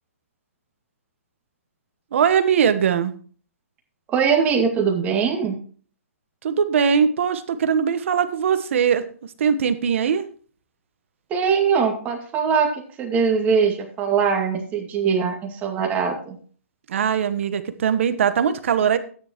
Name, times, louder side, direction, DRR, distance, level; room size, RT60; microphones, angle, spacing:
voice 1, 2.1-3.1 6.4-10.2 16.9-19.0, right 7 dB, 60° right, 11 dB, 1.2 m, -21 dB
voice 2, 4.1-5.5 11.3-16.4, right 6 dB, 20° right, 2 dB, 2.2 m, -21 dB
14.0 x 9.7 x 3.1 m, 0.43 s
hypercardioid pair, 145°, 8 cm